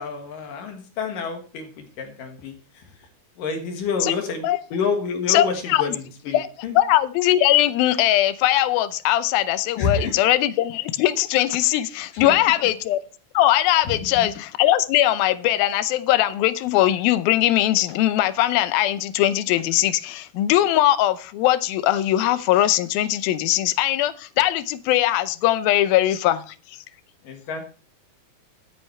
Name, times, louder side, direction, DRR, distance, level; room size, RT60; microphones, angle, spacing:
voice 1, 0.0-2.5 3.4-6.8 9.8-10.1 12.1-12.3 13.9-14.3 27.2-27.6, left 5 dB, 70° left, 5 dB, 3.2 m, -28 dB
voice 2, 5.3-6.0 6.3-6.5 6.8-13.0 13.3-26.6, left 13 dB, 85° left, 15 dB, 2.6 m, -20 dB
14.5 x 9.0 x 3.2 m, 0.38 s
omnidirectional pair, 4.1 m